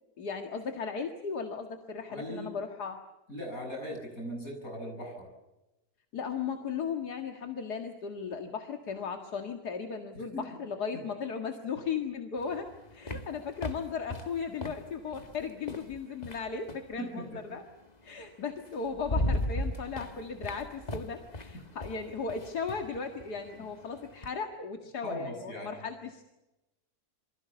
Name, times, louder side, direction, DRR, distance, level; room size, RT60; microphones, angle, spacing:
voice 1, 0.2-3.0 6.1-17.6 18.0-26.2, left 5 dB, 85° left, 5 dB, 2.4 m, -36 dB
voice 2, 2.1-2.5 3.3-5.3 10.1-10.2 13.1-13.2 17.0-17.2 17.5-17.6 23.6-23.7 25.0-25.8, equal, 60° left, 3 dB, 8.1 m, -39 dB
sound 1, 12.4-16.9 18.2-18.3 18.7-24.4, left 1 dB, 25° left, 1.6 m, -37 dB
27.5 x 24.0 x 7.0 m, 0.99 s
omnidirectional pair, 1.7 m